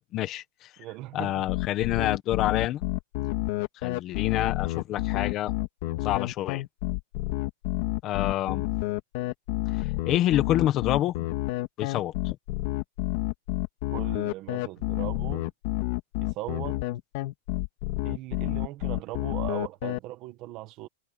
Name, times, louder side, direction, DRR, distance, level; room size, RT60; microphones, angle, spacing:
voice 1, 0.1-0.7 1.1-2.8 3.8-5.5 6.0-6.6 8.0-8.6 9.7-11.1 11.8-12.4, left 13 dB, 20° left, 1.1 m, -27 dB
voice 2, 0.8-1.3 13.9-15.5 16.2-16.8 18.0-20.9, right 17 dB, 25° right, 1.6 m, -39 dB
sound 1, 1.5-20.0, left 20 dB, 40° left, 3.1 m, -29 dB
supercardioid pair, 180°, 0 cm